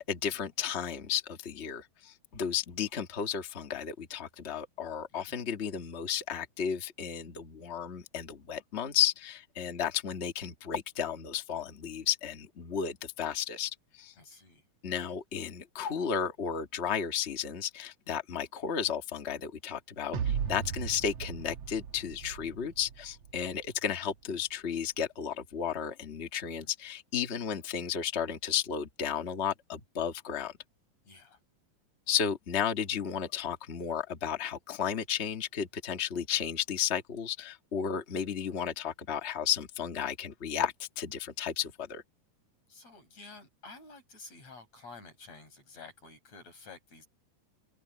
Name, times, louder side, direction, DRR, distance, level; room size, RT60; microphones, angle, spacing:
voice 1, 0.0-14.1 14.8-30.5 32.1-42.0, left 8 dB, 90° left, 0.5 m, -33 dB
voice 2, 5.1-5.4 14.2-14.7 20.7-20.9 26.4-26.7 31.0-31.4 42.7-47.1, left 3 dB, 45° left, 8.4 m, -51 dB
sound 1, 20.1-23.4, right 7 dB, 60° right, 1.8 m, -36 dB
omnidirectional pair, 4.1 m